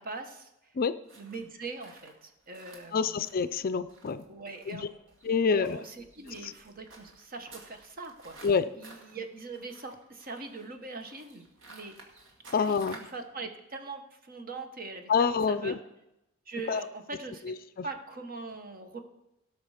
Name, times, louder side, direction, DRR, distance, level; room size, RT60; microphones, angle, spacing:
voice 1, 0.0-0.7 1.2-3.2 4.2-5.0 5.5-8.4 8.7-12.0 12.6-15.8 16.5-17.5 17.8-19.0, right 3 dB, 45° right, 6 dB, 1.2 m, -42 dB
sound 1, 1.1-13.2, right 2 dB, 65° right, 1.9 m, -54 dB
voice 2, 2.9-4.2 4.7-4.9 5.2-5.8 6.4-6.5 8.4-8.6 12.5-13.0 15.1-15.8 16.7-16.8 17.5-17.9, left 5 dB, 45° left, 13 dB, 0.4 m, -27 dB
17.0 x 6.0 x 5.0 m, 0.88 s
head